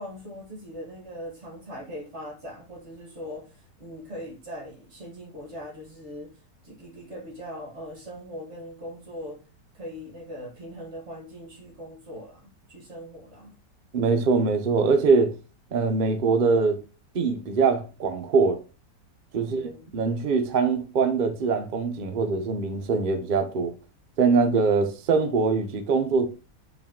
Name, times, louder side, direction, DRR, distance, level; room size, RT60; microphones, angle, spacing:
voice 1, 0.0-6.3 6.6-9.4 9.7-13.5 19.4-19.9, equal, 45° right, 1.6 m, -40 dB
voice 2, 13.9-15.3 15.7-16.8 17.1-18.6 19.3-23.7 24.2-26.3, right 4 dB, 80° right, 0.4 m, -23 dB
4.7 x 3.1 x 3.5 m
omnidirectional pair, 1.9 m